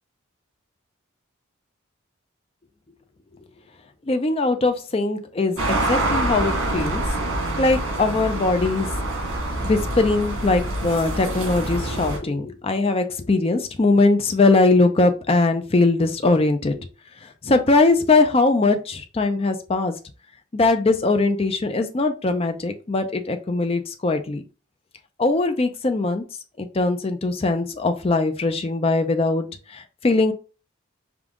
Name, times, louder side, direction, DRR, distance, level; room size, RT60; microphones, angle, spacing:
voice 1, 4.1-7.0 7.6-8.9 9.6-16.7 17.2-19.9 20.5-24.4 25.2-26.2 26.6-30.3, left 3 dB, 30° left, 7 dB, 0.4 m, -21 dB
sound 1, 5.6-12.2, right 1 dB, 85° right, 1.5 m, -26 dB
5.2 x 2.4 x 3.6 m, 0.34 s
head